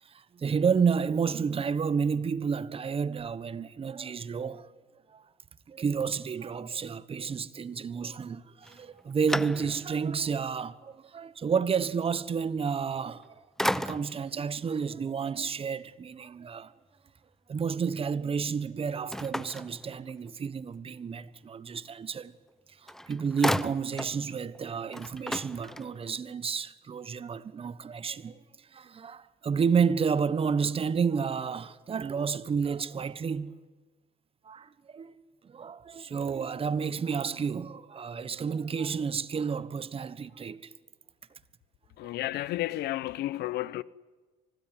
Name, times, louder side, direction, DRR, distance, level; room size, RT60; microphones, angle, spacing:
voice 1, 0.0-4.8 5.1-5.2 5.7-13.4 13.7-16.7 17.5-22.3 22.8-28.4 28.7-33.6 34.4-35.1 35.4-40.7 42.0-42.1, right 6 dB, 35° right, 1.3 m, -31 dB
sound 1, 8.6-10.1 10.6-10.7 12.9-13.3 13.6-14.3 19.1-20.4 22.5-22.6 22.9-24.2 24.5-24.6 24.9-26.2, equal, ahead, 0.8 m, -34 dB
voice 2, 42.0-43.8, left 16 dB, 75° left, 0.9 m, -32 dB
25.0 x 19.0 x 9.7 m
cardioid pair, 110°, 17 cm